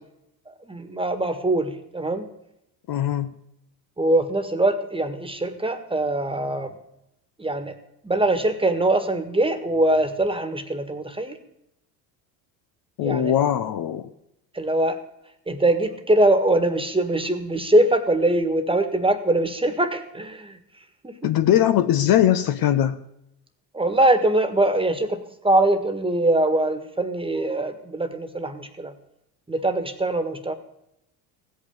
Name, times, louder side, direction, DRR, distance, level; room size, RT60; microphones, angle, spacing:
voice 1, 0.6-2.2 4.0-6.7 7.4-7.7 8.0-11.4 13.0-13.3 14.5-15.0 15.5-20.6 21.0-21.2 23.7-28.9 29.5-30.5, right 1 dB, 10° right, 9 dB, 1.7 m, -22 dB
voice 2, 2.9-3.3 13.0-14.1 21.2-23.0, left 11 dB, 50° left, 10 dB, 0.8 m, -20 dB
15.5 x 5.7 x 8.8 m, 0.81 s
hypercardioid pair, 70°, 46 cm